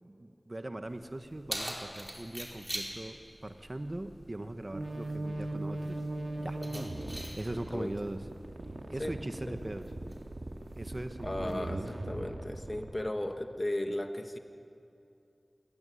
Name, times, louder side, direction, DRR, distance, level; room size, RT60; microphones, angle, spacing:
voice 1, 0.0-6.0 6.4-6.6 7.4-8.2 8.9-9.8 10.7-11.8, right 1 dB, 40° right, 8 dB, 1.2 m, -40 dB
Keys jangling, 0.9-11.9, right 1 dB, 20° right, 4.8 m, -46 dB
sound 1, 4.7-12.9, right 2 dB, 85° right, 2.1 m, -39 dB
voice 2, 11.2-14.4, left 1 dB, 35° left, 6 dB, 1.5 m, -36 dB
21.0 x 19.0 x 10.0 m, 2.6 s
wide cardioid pair, 40°, 0 cm